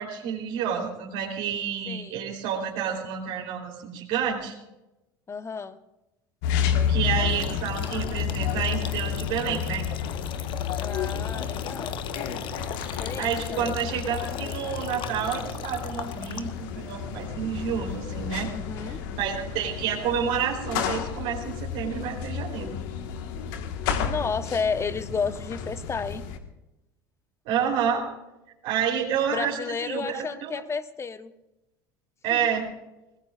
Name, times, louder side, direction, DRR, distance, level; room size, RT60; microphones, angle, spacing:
voice 1, 0.0-4.5 6.9-9.8 12.8-18.5 19.2-22.7 27.5-28.0 28.6-30.5 32.2-32.6, right 8 dB, 60° right, -2 dB, 3.7 m, -29 dB
voice 2, 1.9-2.2 5.3-5.8 10.8-12.0 13.0-13.8 18.5-19.0 24.0-26.2 29.3-31.3 32.3-32.5, left 5 dB, 25° left, 11 dB, 1.2 m, -32 dB
sound 1, 6.4-26.4, left 8 dB, 65° left, 1.6 m, -31 dB
sound 2, 7.4-16.7, left 10 dB, 45° left, 1.1 m, -39 dB
24.0 x 20.0 x 2.5 m, 0.95 s
hypercardioid pair, 75°, 11 cm